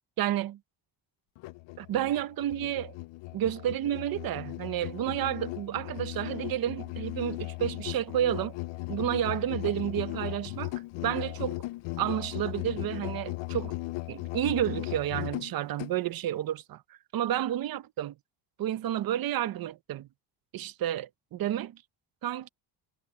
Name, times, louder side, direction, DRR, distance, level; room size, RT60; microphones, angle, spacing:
voice 1, 0.2-0.6 1.8-2.9 3.3-8.5 8.9-10.7 11.0-11.6 12.0-13.8 14.1-16.8 17.1-18.1 18.6-20.1 20.5-21.8 22.2-22.5, right 12 dB, 50° right, 0.9 m, -30 dB
Musical instrument, 1.4-16.0, left 22 dB, 85° left, 0.6 m, -37 dB
cardioid pair, 160°, 44 cm